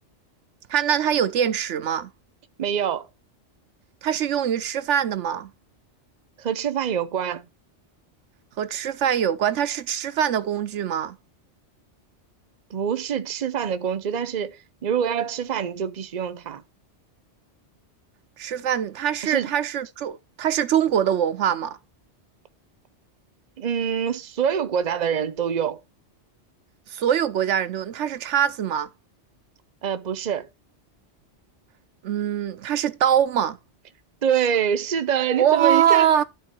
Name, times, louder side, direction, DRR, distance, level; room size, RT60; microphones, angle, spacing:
voice 1, 0.7-2.1 4.0-5.5 8.6-11.2 18.4-21.8 26.9-28.9 32.0-33.6 35.4-36.2, right 9 dB, 80° right, 1.0 m, -23 dB
voice 2, 2.6-3.1 6.4-7.5 12.7-16.6 19.2-19.5 23.6-25.8 29.8-30.5 34.2-36.1, right 8 dB, 40° right, 0.8 m, -25 dB
12.0 x 4.2 x 4.4 m
omnidirectional pair, 1.2 m